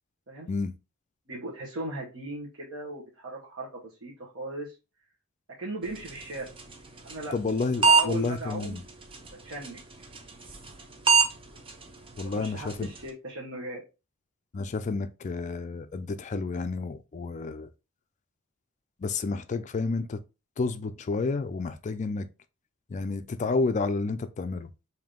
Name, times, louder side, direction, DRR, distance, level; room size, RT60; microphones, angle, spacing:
voice 1, 1.3-4.7 5.6-6.5 7.0-7.4 7.8-8.8 9.4-9.8 12.2-13.8, right 2 dB, 60° right, 1.0 m, -38 dB
sound 1, 5.8-13.1, right 5 dB, 25° right, 0.5 m, -29 dB
voice 2, 7.3-8.8 12.2-12.9 14.5-17.7 19.0-20.2 20.6-22.3 22.9-24.7, left 3 dB, 35° left, 0.3 m, -30 dB
3.5 x 2.7 x 3.6 m
head